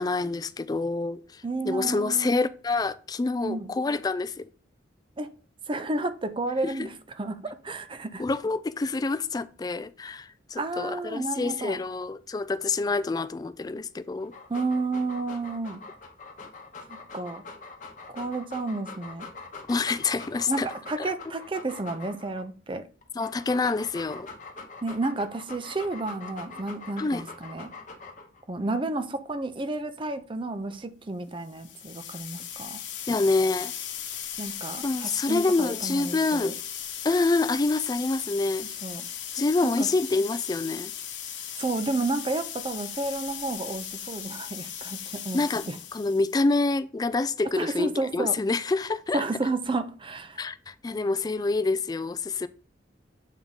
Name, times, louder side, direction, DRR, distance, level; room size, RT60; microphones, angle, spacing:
voice 1, 0.0-4.5 6.6-6.9 8.2-14.3 19.7-20.7 21.0-21.1 23.2-24.3 27.0-27.2 33.1-33.7 34.8-36.6 37.0-38.7 39.3-40.9 45.3-49.2 50.4-52.5, left 3 dB, 20° left, 0.3 m, -27 dB
voice 2, 1.4-2.3 3.4-3.7 5.2-5.3 5.7-8.2 10.6-11.8 14.5-15.8 16.9-17.4 18.1-19.3 20.5-22.8 24.8-27.7 28.5-32.8 34.4-36.5 38.8-39.1 39.6-39.9 41.6-45.4 45.7-45.8 47.6-48.3 49.1-50.5, right 2 dB, 25° right, 0.5 m, -31 dB
Dog, 14.2-22.4 23.0-28.4, left 4 dB, 45° left, 0.9 m, -43 dB
sound 1, 31.5-46.4, left 9 dB, 70° left, 1.0 m, -37 dB
7.3 x 3.5 x 4.0 m
head